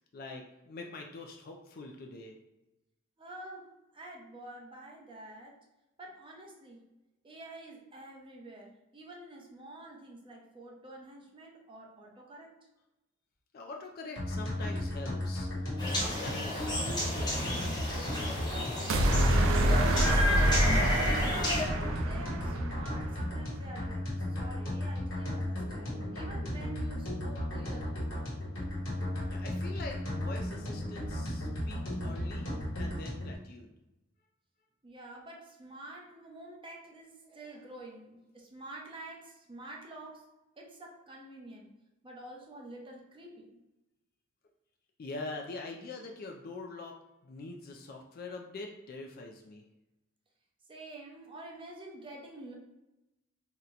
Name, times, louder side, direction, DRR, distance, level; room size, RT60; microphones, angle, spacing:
voice 1, 0.1-2.4 13.5-15.5 15.9-17.9 29.3-32.5 32.8-33.7 45.0-47.0 47.2-49.6, left 3 dB, 45° left, 2 dB, 0.4 m, -44 dB
voice 2, 3.2-5.5 6.0-6.8 7.2-12.5 18.6-28.1 34.8-40.3 40.6-41.7 42.0-43.6 50.7-52.5, right 1 dB, 25° right, -1 dB, 0.6 m, -48 dB
sound 1, 14.2-33.3, left 1 dB, 70° left, 1.4 m, -35 dB
sound 2, 15.8-21.6, left 1 dB, 20° left, 0.9 m, -32 dB
sound 3, 18.9-23.2, right 1 dB, 80° right, 0.4 m, -27 dB
2.8 x 2.1 x 3.8 m, 0.97 s
head